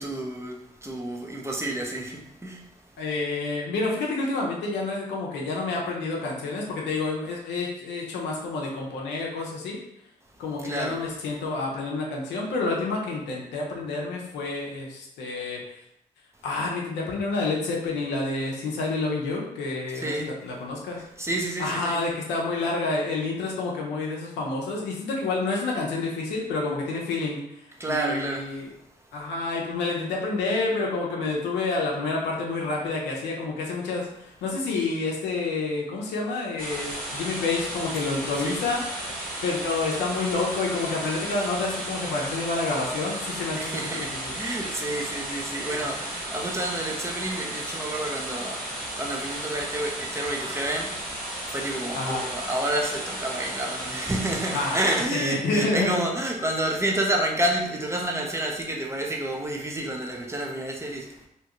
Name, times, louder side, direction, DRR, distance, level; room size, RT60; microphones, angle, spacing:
voice 1, 0.0-2.6 10.6-11.0 19.9-20.3 21.2-22.0 27.8-28.4 38.4-38.6 43.6-61.3, right 1 dB, 15° right, 0 dB, 0.7 m, -29 dB
voice 2, 3.0-9.8 10.4-15.6 16.4-21.0 21.6-27.4 27.9-28.7 29.1-44.4 45.8-45.9 51.9-52.2 54.5-56.0, left 3 dB, 85° left, -2 dB, 0.6 m, -29 dB
sound 1, 36.6-55.1, right 1 dB, 55° right, 1.3 m, -34 dB
2.8 x 2.3 x 2.9 m, 0.78 s
hypercardioid pair, 45°, 18 cm